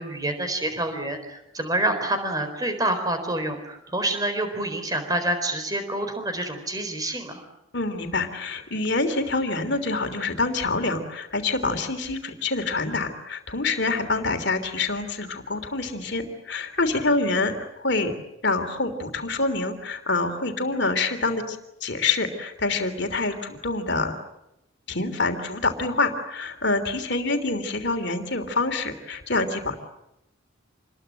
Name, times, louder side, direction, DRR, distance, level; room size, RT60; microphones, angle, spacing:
voice 1, 0.0-7.4, right 1 dB, 20° right, 7 dB, 4.2 m, -27 dB
voice 2, 7.7-17.5 17.8-18.1 18.4-24.1 24.9-29.8, left 3 dB, 55° left, 7 dB, 3.2 m, -26 dB
28.0 x 21.5 x 9.0 m, 0.88 s
head